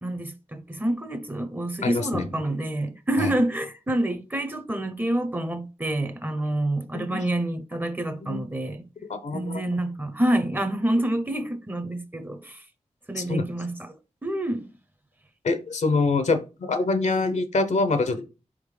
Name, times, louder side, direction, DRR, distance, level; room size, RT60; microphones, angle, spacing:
voice 1, 0.0-8.8 9.3-12.6 13.1-13.9 14.2-14.7, right 1 dB, 15° right, 0.6 m, -27 dB
voice 2, 1.8-2.2 3.2-3.3 6.9-7.2 8.2-8.4 9.1-9.6 13.2-13.4 15.4-18.3, left 3 dB, 75° left, 0.7 m, -25 dB
4.2 x 3.6 x 3.2 m
wide cardioid pair, 90°, 12 cm